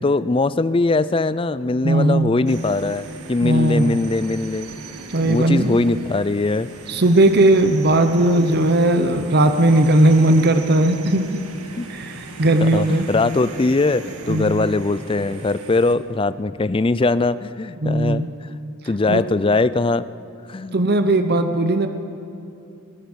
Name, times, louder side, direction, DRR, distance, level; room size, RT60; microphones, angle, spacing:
voice 1, 0.0-4.7 5.2-6.7 11.8-11.9 12.6-18.5 18.9-20.1 20.5-20.8, left 3 dB, 25° left, 16 dB, 0.4 m, -21 dB
voice 2, 1.8-2.4 3.4-4.0 5.1-5.8 6.9-11.4 11.9-13.1 14.3-14.6 17.8-18.3 19.1-19.2 20.7-21.9, right 1 dB, 45° right, 8 dB, 0.9 m, -17 dB
sound 1, 2.5-15.9, right 3 dB, 90° right, 1.9 m, -38 dB
20.5 x 17.0 x 8.0 m, 2.7 s
head